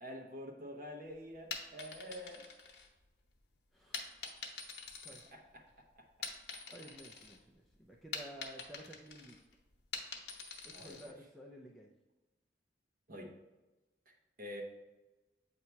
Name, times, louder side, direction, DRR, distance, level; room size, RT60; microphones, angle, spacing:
voice 1, 0.0-2.4 5.3-5.6 6.0-6.1 10.7-11.1 13.1-13.3 14.1-14.6, equal, 50° right, 0 dB, 1.0 m, -47 dB
sound 1, 1.3-3.3 3.9-5.7 6.1-7.4 7.7-11.1, left 5 dB, 65° left, 0.9 m, -45 dB
voice 2, 3.7-4.6 5.0-5.2 6.7-9.4 10.6-11.9, right 1 dB, ahead, -2 dB, 0.4 m, -53 dB
8.2 x 2.8 x 4.4 m, 1.1 s
head